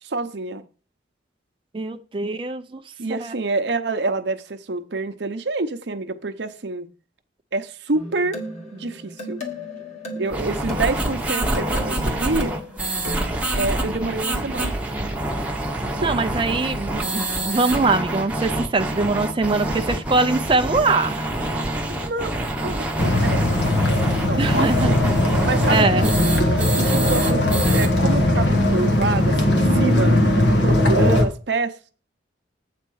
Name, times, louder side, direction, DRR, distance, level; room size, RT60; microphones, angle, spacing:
voice 1, 0.0-0.7 3.0-6.9 7.5-8.4 8.7-9.4 10.2-12.6 13.6-14.8 16.0-16.1 21.9-22.3 22.6-22.8 23.2-23.5 24.2-25.0 25.4-26.3 26.6-27.5 27.7-30.1 30.6-31.7, right 3 dB, 60° right, 9 dB, 0.8 m, -27 dB
voice 2, 1.7-2.8 3.2-3.3 16.0-21.1 24.3-24.9 25.7-26.1, right 3 dB, 25° right, 6 dB, 0.4 m, -22 dB
sound 1, 7.9-13.4, left 1 dB, 40° left, 1.6 m, -35 dB
sound 2, 10.3-27.9, right 1 dB, 10° right, 0.9 m, -26 dB
sound 3, 23.0-31.2, left 1 dB, 65° left, 1.3 m, -19 dB
8.4 x 4.3 x 6.2 m, 0.38 s
head